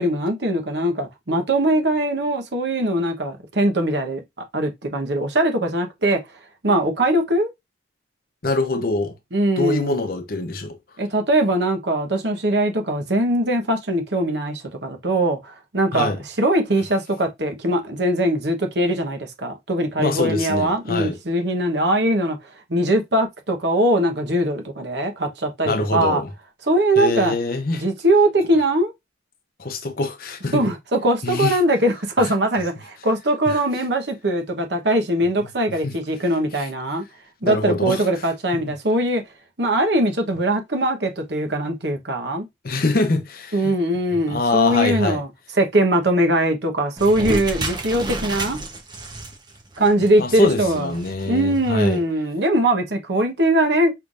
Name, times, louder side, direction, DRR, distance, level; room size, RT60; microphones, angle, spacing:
voice 1, 0.0-6.2 6.6-7.5 9.3-10.0 11.0-22.4 22.7-26.2 26.7-27.3 27.7-28.9 30.5-37.0 37.4-39.2 39.6-42.5 43.5-45.3 45.6-48.6 49.8-50.9 51.3-53.9, right 1 dB, 60° right, 1.1 m, -21 dB
voice 2, 8.4-9.1 9.6-10.8 15.9-16.2 20.0-21.2 25.6-26.3 27.0-27.8 29.6-30.6 31.2-31.6 32.2-32.3 33.5-33.6 35.8-35.9 37.4-38.0 38.6-38.7 42.6-43.7 44.3-45.2 50.2-52.0, left 3 dB, 50° left, 0.7 m, -24 dB
sound 1, 47.0-52.0, right 2 dB, 20° right, 0.9 m, -31 dB
5.6 x 3.4 x 2.5 m
head